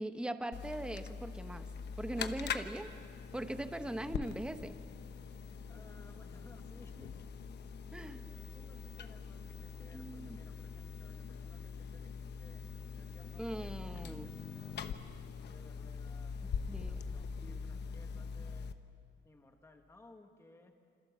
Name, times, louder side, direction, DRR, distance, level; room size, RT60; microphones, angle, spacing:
voice 1, 0.0-1.7 2.0-2.9 3.3-4.8 7.9-8.2 9.9-10.4 13.4-14.4 16.7-17.0 17.4-17.6, right 1 dB, 5° right, 8 dB, 0.9 m, -40 dB
sound 1, 0.5-18.7, left 6 dB, 70° left, 1.1 m, -43 dB
voice 2, 5.7-7.2 8.0-12.6 12.9-14.9 15.2-18.7 19.2-20.8, left 2 dB, 15° left, 4 dB, 1.5 m, -61 dB
28.0 x 26.5 x 7.3 m, 2.3 s
wide cardioid pair, 175°, 18 cm